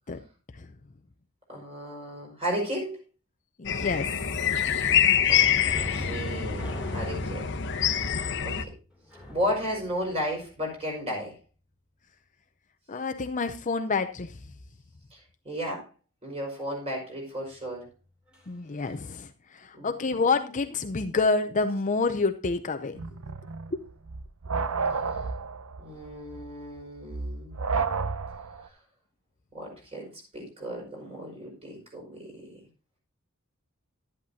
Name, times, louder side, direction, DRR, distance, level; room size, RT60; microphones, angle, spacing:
voice 1, 1.5-3.0 5.3-5.6 5.9-7.6 7.9-8.1 8.4-8.7 9.3-11.4 15.1-15.2 15.4-15.9 16.2-17.9 19.7-19.9 24.9-25.0 25.8-27.5 29.5-30.1 30.3-32.6, equal, 30° right, 5.5 m, -34 dB
voice 2, 3.6-4.1 4.6-5.0 12.9-14.4 18.5-23.0 23.7-23.8, left 4 dB, 35° left, 0.6 m, -28 dB
sound 1, 3.7-8.6, left 9 dB, 55° left, 0.9 m, -25 dB
sound 2, 5.6-11.0 18.3-18.5 18.8-19.0, left 1 dB, 5° right, 3.0 m, -40 dB
sound 3, 22.9-28.7, right 4 dB, 75° right, 0.8 m, -31 dB
12.0 x 11.0 x 2.7 m
head